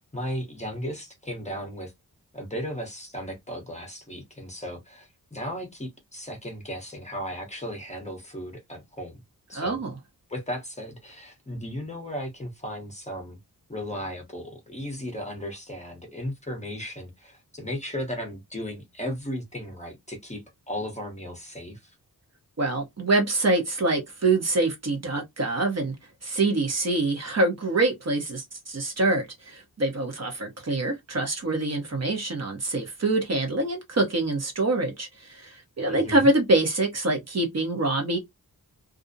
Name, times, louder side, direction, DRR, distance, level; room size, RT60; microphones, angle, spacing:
voice 1, 0.1-1.9 2.3-9.2 9.5-9.8 10.3-13.4 13.7-21.9 35.9-36.3, equal, 20° left, 0.8 m, -35 dB
voice 2, 9.5-9.9 22.6-25.9 26.2-38.2, right 2 dB, 40° right, 0.8 m, -25 dB
2.5 x 2.0 x 2.5 m
wide cardioid pair, 100°, 39 cm